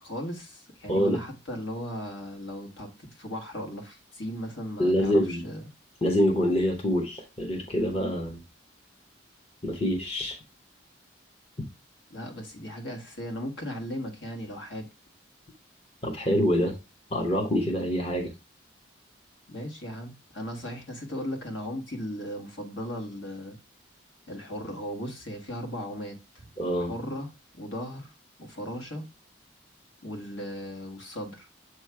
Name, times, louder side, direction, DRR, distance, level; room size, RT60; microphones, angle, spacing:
voice 1, 0.0-5.6 12.1-14.9 19.5-23.6 24.3-26.4 26.8-27.3 27.6-28.1 28.4-29.1 30.0-31.5, equal, 70° left, 1.7 m, -37 dB
voice 2, 0.9-1.2 4.8-5.4 6.0-8.4 9.6-10.4 16.0-16.8 17.1-18.3 26.6-26.9, equal, 30° left, 0.9 m, -25 dB
7.3 x 3.0 x 4.7 m
head